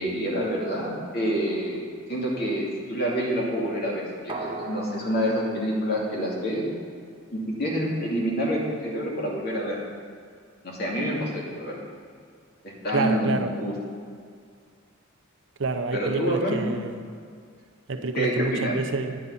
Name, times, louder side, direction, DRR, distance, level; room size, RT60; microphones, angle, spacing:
voice 1, 0.0-1.8 2.1-6.6 7.3-9.8 10.6-11.7 12.6-13.7 15.9-16.6 18.1-18.8, equal, 50° left, -3 dB, 2.5 m, -27 dB
sound 1, 4.3-6.9 7.2-7.3, right 2 dB, 25° right, 1.0 m, -39 dB
voice 2, 12.9-13.5 15.6-16.9 17.9-19.2, right 3 dB, 60° right, 7 dB, 0.7 m, -28 dB
9.9 x 9.4 x 5.6 m, 2.2 s
head